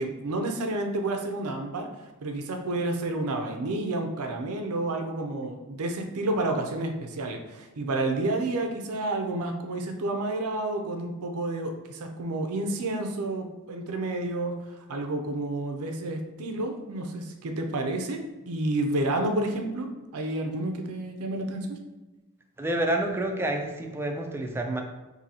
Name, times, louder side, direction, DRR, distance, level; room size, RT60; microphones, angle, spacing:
voice 1, 0.0-1.9 2.2-14.6 14.9-19.9 20.1-21.8, right 2 dB, 75° right, 4 dB, 0.5 m, -30 dB
voice 2, 22.6-24.8, right 1 dB, 10° right, 3 dB, 0.3 m, -28 dB
2.8 x 2.7 x 4.0 m, 1.1 s
head